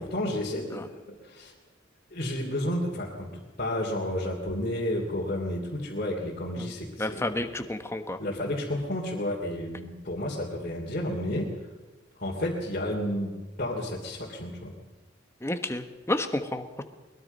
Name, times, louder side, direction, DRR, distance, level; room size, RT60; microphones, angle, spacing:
voice 1, 0.0-1.5 2.1-7.7 8.2-11.5 12.2-14.8, left 1 dB, 40° left, -3 dB, 3.0 m, -31 dB
voice 2, 7.0-8.2 15.4-16.8, left 1 dB, 10° left, 8 dB, 1.3 m, -30 dB
22.5 x 21.5 x 5.5 m, 1.2 s
head